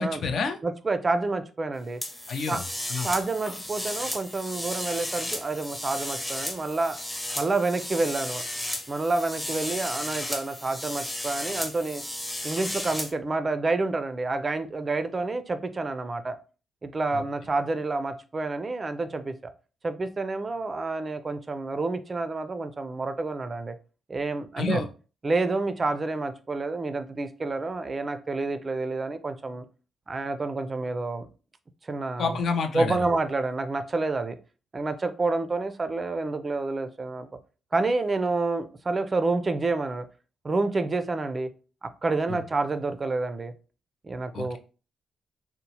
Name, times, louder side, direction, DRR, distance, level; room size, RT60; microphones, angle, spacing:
voice 1, 0.0-0.6 2.3-2.6 2.9-3.1 24.6-24.9 32.2-33.1 42.3-42.4 44.3-44.6, left 4 dB, 65° left, 7 dB, 0.4 m, -28 dB
voice 2, 0.6-2.0 2.5-2.6 3.0-7.0 7.4-8.4 8.9-12.0 12.4-16.4 16.8-19.3 19.8-23.7 24.1-24.9 25.2-29.6 30.1-31.3 31.8-32.4 32.7-34.4 34.7-37.3 37.7-40.1 40.4-41.5 41.8-43.5 44.0-44.6, right 3 dB, 35° right, 10 dB, 0.3 m, -28 dB
sound 1, 2.0-13.1, left 1 dB, 10° left, 0.6 m, -34 dB
2.9 x 2.0 x 2.8 m, 0.35 s
cardioid pair, 75°, 0 cm